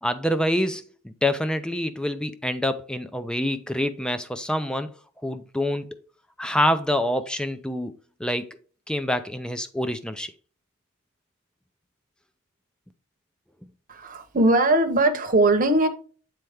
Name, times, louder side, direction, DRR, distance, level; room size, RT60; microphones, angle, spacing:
voice 1, 0.0-4.9 5.2-6.0 6.4-7.9 8.2-8.5 8.9-10.3, left 1 dB, 5° left, 0.4 m, -26 dB
voice 2, 13.9-15.9, right 2 dB, 35° right, 0.9 m, -20 dB
7.7 x 4.4 x 3.5 m
head